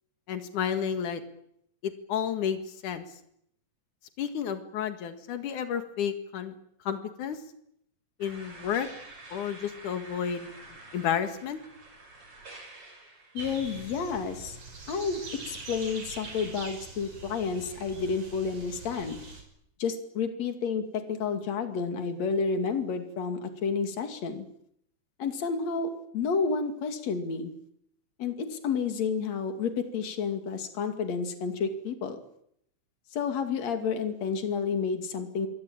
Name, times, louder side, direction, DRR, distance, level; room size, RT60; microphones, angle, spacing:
voice 1, 0.3-1.2 1.8-3.0 4.2-6.5 6.9-7.4 8.2-8.9 9.3-10.5 10.9-11.6, left 8 dB, 85° left, 8 dB, 3.4 m, -31 dB
sound 1, 8.2-16.5, right 2 dB, 50° right, 6.6 m, -49 dB
voice 2, 13.3-14.6 14.9-15.2 15.5-19.2 19.8-24.5 25.2-27.5 28.2-32.2 33.1-35.5, left 5 dB, 60° left, 7 dB, 3.6 m, -30 dB
sound 2, 13.4-19.4, right 3 dB, 85° right, 7.4 m, -43 dB
27.0 x 22.5 x 8.9 m, 0.73 s
omnidirectional pair, 3.4 m